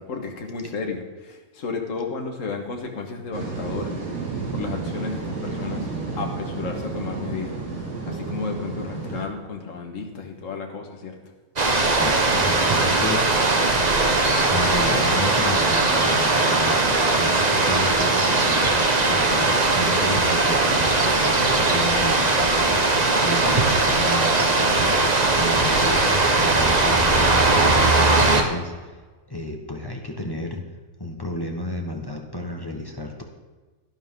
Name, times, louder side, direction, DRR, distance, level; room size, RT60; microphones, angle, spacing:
voice 1, 0.0-4.0 4.5-5.9 6.2-7.6 8.0-11.2, left 4 dB, 65° left, 2 dB, 1.8 m, -32 dB
sound 1, 3.3-9.2, right 3 dB, 80° right, 2.6 m, -31 dB
sound 2, 11.6-28.4, right 3 dB, 30° right, 1.2 m, -19 dB
voice 2, 11.9-13.3 14.5-18.7 19.1-22.8 23.2-27.8 28.1-28.9 29.3-30.6 31.0-33.2, left 1 dB, 20° left, 1 dB, 1.2 m, -32 dB
12.0 x 11.5 x 3.7 m, 1.3 s
omnidirectional pair, 1.5 m